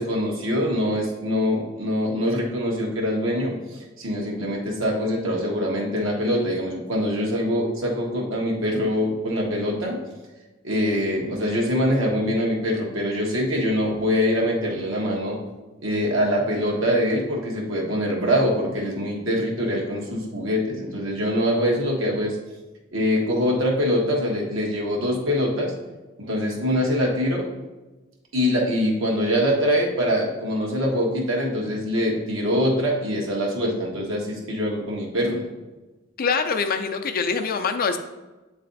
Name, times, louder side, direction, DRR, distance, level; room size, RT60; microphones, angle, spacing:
voice 1, 0.0-10.0 10.6-15.4 15.8-22.4 22.9-25.7 26.2-27.5 28.3-35.4, equal, 75° right, -2 dB, 1.5 m, -24 dB
voice 2, 36.2-38.0, left 5 dB, 45° left, 7 dB, 0.5 m, -24 dB
8.5 x 3.2 x 4.0 m, 1.2 s
head